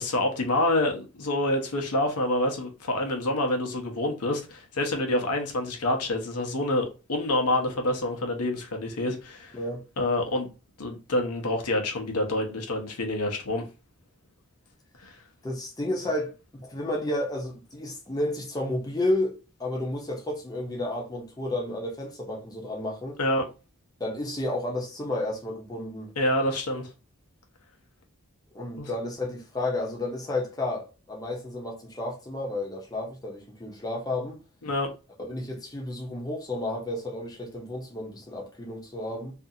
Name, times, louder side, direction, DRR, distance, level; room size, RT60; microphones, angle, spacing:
voice 1, 0.0-9.6 10.0-10.5 10.8-13.6 15.0-15.2 23.2-23.4 26.2-26.9 28.8-28.9 34.6-34.9, left 1 dB, 90° left, 0.7 m, -27 dB
voice 2, 9.5-9.9 15.4-23.2 24.0-26.1 28.5-34.4 35.2-39.3, left 1 dB, 15° left, 0.6 m, -32 dB
2.6 x 2.4 x 2.7 m
head